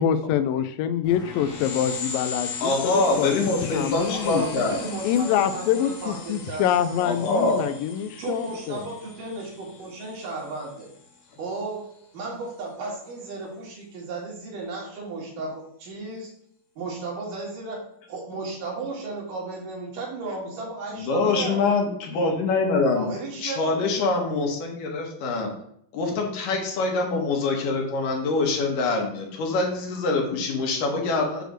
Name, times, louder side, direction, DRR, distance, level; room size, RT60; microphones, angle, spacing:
voice 1, 0.0-3.3 3.7-4.4 5.0-8.9, left 9 dB, 90° left, 10 dB, 2.3 m, -25 dB
sound 1, 1.0-11.2, left 5 dB, 55° left, 1.4 m, -38 dB
voice 2, 2.6-4.8 7.0-7.6 20.9-23.1 23.4-25.5 25.9-31.4, left 3 dB, 75° left, 1 dB, 2.9 m, -24 dB
voice 3, 4.1-6.6 6.9-7.1 8.2-10.9 11.4-11.8 12.1-16.3 16.8-17.8 18.1-21.6 22.9-24.0, right 3 dB, 70° right, -3 dB, 3.6 m, -34 dB
7.8 x 3.3 x 6.4 m, 0.69 s
omnidirectional pair, 3.9 m